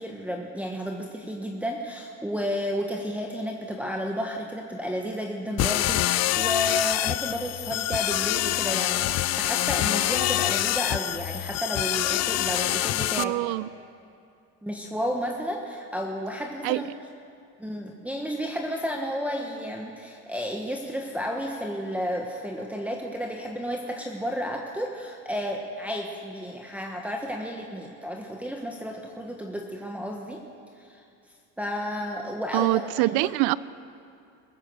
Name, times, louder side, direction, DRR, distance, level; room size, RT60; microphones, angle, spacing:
voice 1, 0.0-13.5 14.6-16.9 17.6-30.4 30.8-31.0 31.6-33.1, equal, 5° right, 0 dB, 1.2 m, -32 dB
sound 1, 5.6-13.2, left 15 dB, 45° left, 0.4 m, -26 dB
voice 2, 13.2-13.7 16.6-16.8 32.5-33.6, right 19 dB, 80° right, 19 dB, 0.5 m, -24 dB
21.0 x 8.7 x 6.6 m, 2.4 s
supercardioid pair, 100°, 36 cm